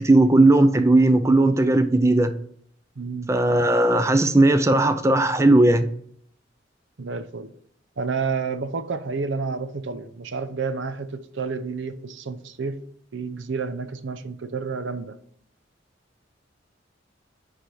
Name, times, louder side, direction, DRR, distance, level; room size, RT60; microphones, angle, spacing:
voice 1, 0.0-2.3 3.3-5.9, right 2 dB, 15° right, 0.5 m, -17 dB
voice 2, 3.0-3.3 7.0-7.5 8.0-12.8 13.1-15.2, right 4 dB, 75° right, 0.6 m, -30 dB
9.9 x 3.4 x 6.0 m
head